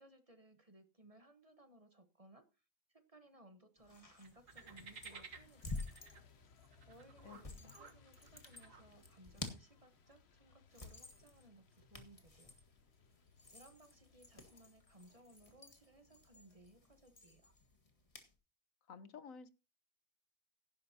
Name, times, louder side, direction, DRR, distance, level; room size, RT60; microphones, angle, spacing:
voice 1, 0.0-2.6 2.9-6.0 6.9-12.5 13.5-17.5, right 1 dB, 25° right, 9 dB, 1.2 m, -63 dB
sound 1, 3.8-18.3, left 2 dB, 25° left, 1.8 m, -52 dB
sound 2, 4.2-9.2, right 5 dB, 70° right, 1.8 m, -57 dB
Truck, 4.5-16.8, left 6 dB, 55° left, 1.2 m, -68 dB
voice 2, 18.9-19.5, left 6 dB, 80° left, 14 dB, 1.4 m, -52 dB
17.0 x 11.0 x 2.8 m, 0.29 s
omnidirectional pair, 1.4 m